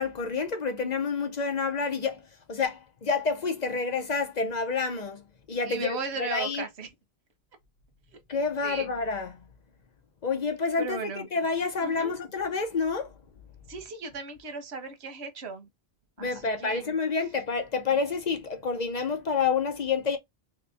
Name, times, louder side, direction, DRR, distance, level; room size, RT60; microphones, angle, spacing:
voice 1, 0.0-6.6 8.3-9.4 10.2-13.1 16.2-20.2, left 5 dB, 45° left, 0.7 m, -29 dB
voice 2, 5.7-6.9 8.6-8.9 10.8-11.3 11.8-12.1 13.7-15.7 16.2-17.0, right 4 dB, 90° right, 1.1 m, -36 dB
3.1 x 3.0 x 3.3 m
omnidirectional pair, 1.1 m